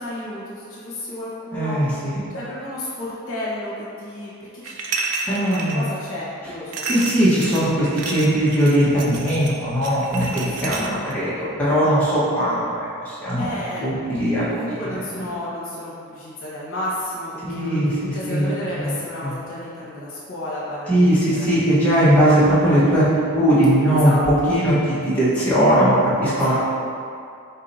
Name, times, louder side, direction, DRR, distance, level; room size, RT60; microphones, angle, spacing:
voice 1, 0.0-1.8 2.3-4.8 5.3-6.8 7.4-7.5 10.6-10.9 13.4-13.8 14.5-17.8 18.1-21.5 23.9-24.6 26.3-26.6, left 1 dB, 60° left, -7 dB, 1.0 m, -32 dB
voice 2, 1.5-2.2 5.3-5.9 6.9-14.5 17.5-18.5 18.8-18.9 19.2-19.3 20.9-23.1 23.3-24.1 24.5-26.6, equal, 5° left, -12 dB, 1.0 m, -19 dB
sound 1, 4.6-5.8 6.7-11.1, right 3 dB, 85° right, 0.5 m, -30 dB
4.3 x 2.8 x 3.9 m, 2.4 s
head